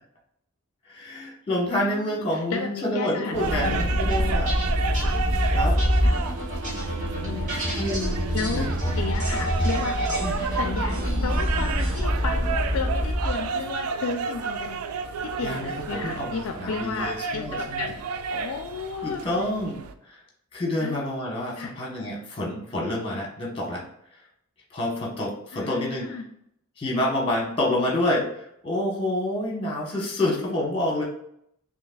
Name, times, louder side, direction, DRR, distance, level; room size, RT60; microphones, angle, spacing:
voice 1, 0.9-4.5 5.5-5.8 7.7-8.2 8.5-8.9 10.2-10.4 15.4-17.9 19.0-19.8 20.5-23.8 24.7-26.1 26.8-28.3 28.6-31.0, left 1 dB, 25° left, -2 dB, 1.1 m, -28 dB
voice 2, 1.8-4.0 6.0-6.2 7.2-7.6 8.3-8.7 9.0-10.0 10.6-14.8 15.2-18.0 18.3-19.2 20.8-21.0 21.6-21.7 25.5-26.2, left 5 dB, 65° left, 5 dB, 0.4 m, -33 dB
sound 1, 3.3-19.9, right 5 dB, 80° right, 0.4 m, -32 dB
sound 2, 3.4-13.6, equal, 35° right, 1.4 m, -25 dB
5.6 x 2.8 x 2.3 m, 0.72 s
head